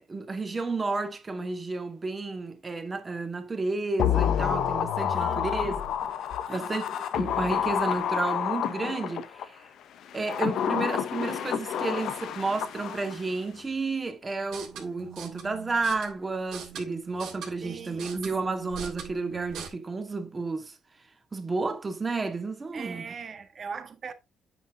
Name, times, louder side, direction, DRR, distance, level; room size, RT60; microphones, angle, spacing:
voice 1, 0.0-5.8 6.5-9.6 10.1-20.8 21.3-23.1, right 3 dB, 30° right, 2.2 m, -31 dB
sound 1, 4.0-9.5 10.1-13.3 13.6-13.7, left 9 dB, 75° left, 0.8 m, -29 dB
voice 2, 5.1-5.8 6.5-6.9 17.6-18.1 18.4-18.5 22.7-24.1, right 5 dB, 45° right, 1.7 m, -41 dB
sound 2, 14.4-19.7, right 8 dB, 85° right, 2.9 m, -43 dB
9.1 x 6.1 x 3.8 m
cardioid pair, 90°, 0 cm